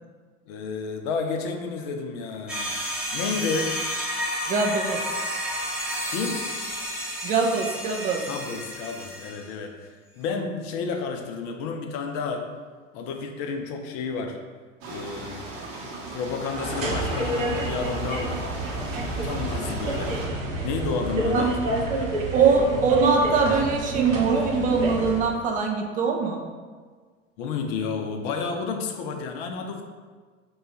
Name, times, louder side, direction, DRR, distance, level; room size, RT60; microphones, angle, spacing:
voice 1, 0.5-2.8 3.1-3.7 6.1-6.4 8.3-9.9 10.1-12.4 12.9-14.4 14.8-15.5 16.1-18.5 19.2-20.2 20.6-22.2 27.4-29.8, left 5 dB, 50° left, 4 dB, 0.6 m, -31 dB
sound 1, 2.5-9.5, equal, ahead, 0.8 m, -31 dB
voice 2, 4.5-5.1 7.2-8.2 21.3-21.5 22.3-26.4, right 4 dB, 25° right, 2 dB, 0.3 m, -22 dB
sound 2, 14.8-20.3, right 2 dB, 45° right, 0.8 m, -38 dB
sound 3, 16.5-25.3, right 2 dB, 80° right, 0.8 m, -28 dB
3.0 x 2.3 x 4.1 m, 1.5 s
figure-of-eight pair, 80°, 39 cm